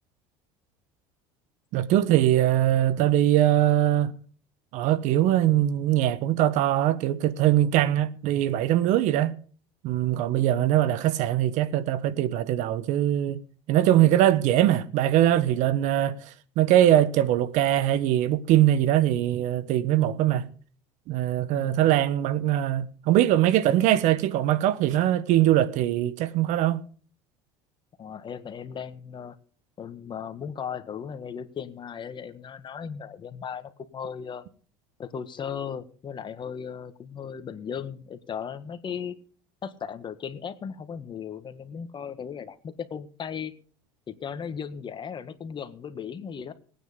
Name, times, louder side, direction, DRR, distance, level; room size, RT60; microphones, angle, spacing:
voice 1, 1.7-4.1 4.7-9.3 9.8-13.4 13.7-20.5 21.1-26.8, right 12 dB, 65° right, 1.2 m, -22 dB
voice 2, 10.5-10.8 21.5-22.0 28.0-29.4 29.8-34.4 35.0-39.2 39.6-43.5 44.1-46.5, left 7 dB, 35° left, 1.6 m, -37 dB
19.0 x 9.3 x 5.2 m
supercardioid pair, 90°, 14 cm